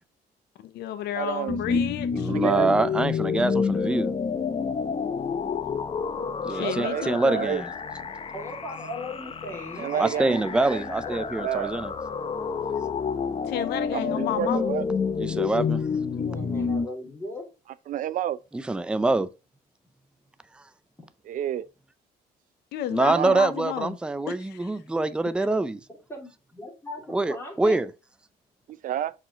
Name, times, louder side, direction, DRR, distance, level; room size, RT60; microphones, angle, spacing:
voice 1, 0.6-2.3 6.5-7.5 13.5-14.8 22.7-24.0 24.3-24.7, left 11 dB, 80° left, 0.8 m, -32 dB
voice 2, 1.1-1.8 2.3-2.7 6.6-7.6 9.8-10.8 11.4-11.7 13.9-14.9 17.9-18.4 21.3-21.6 23.0-23.4 28.7-29.1, right 10 dB, 55° right, 0.5 m, -30 dB
sound 1, 1.5-16.9, left 5 dB, 35° left, 0.8 m, -29 dB
voice 3, 2.1-4.1 6.4-7.7 9.9-11.9 15.2-15.9 18.7-19.3 20.6-20.7 22.9-25.8 27.1-27.9, right 2 dB, 5° right, 0.5 m, -25 dB
voice 4, 8.3-11.4 14.0-14.4 16.1-17.5 26.1-27.8, left 1 dB, 15° left, 3.5 m, -38 dB
5.9 x 4.9 x 3.6 m
cardioid pair, 110°, 17 cm